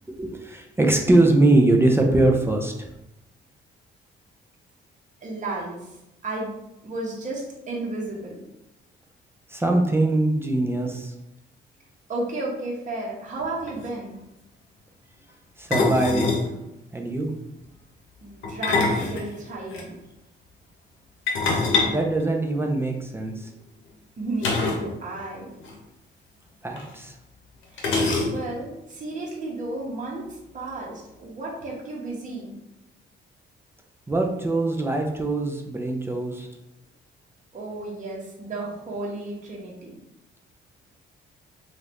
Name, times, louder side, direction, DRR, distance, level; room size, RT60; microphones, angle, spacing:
voice 1, 0.1-2.9 9.5-11.1 15.6-16.4 16.9-17.3 21.9-23.5 26.6-27.1 34.1-36.5, right 2 dB, 10° right, 1 dB, 0.4 m, -22 dB
voice 2, 5.2-5.9 6.2-6.5 6.8-8.4 12.1-14.2 18.2-19.9 24.2-25.5 27.7-28.0 28.3-32.5 37.5-40.0, right 2 dB, 40° right, -3 dB, 0.9 m, -33 dB
sound 1, 13.4-13.5 13.7-13.9 15.7-16.5 18.4-19.8 21.3-22.9 24.4-24.9 25.2-25.3 25.6-25.7 26.8-26.9 27.8-28.6, left 3 dB, 75° left, 0.8 m, -24 dB
2.7 x 2.4 x 3.4 m, 0.88 s
cardioid pair, 90°, 20 cm